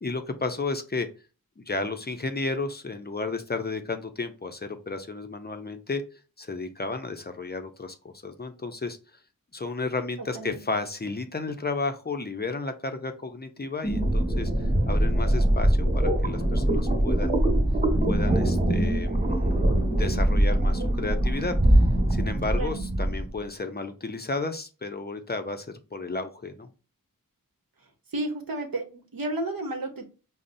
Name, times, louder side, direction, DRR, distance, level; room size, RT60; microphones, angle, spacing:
voice 1, 0.0-1.1 1.6-6.0 6.4-9.0 9.5-17.3 18.1-19.7 20.0-21.8 22.1-26.7, left 3 dB, 30° left, 7 dB, 0.5 m, -33 dB
sound 1, 13.8-23.3, right 1 dB, 35° right, 1.2 m, -23 dB
voice 2, 28.1-30.0, right 2 dB, 85° right, 4 dB, 0.8 m, -32 dB
5.2 x 2.0 x 2.5 m, 0.33 s
wide cardioid pair, 75°, 34 cm